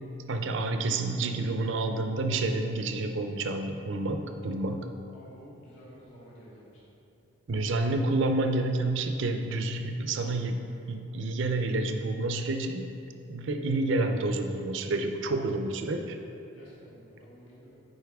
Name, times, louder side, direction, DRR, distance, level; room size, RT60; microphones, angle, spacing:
voice 1, 0.3-4.9 7.5-12.9 13.3-16.2, right 2 dB, 65° right, 6 dB, 0.5 m, -29 dB
voice 2, 5.1-6.8 16.5-17.7, equal, 75° left, -7 dB, 1.4 m, -51 dB
9.5 x 4.2 x 3.5 m, 2.8 s
head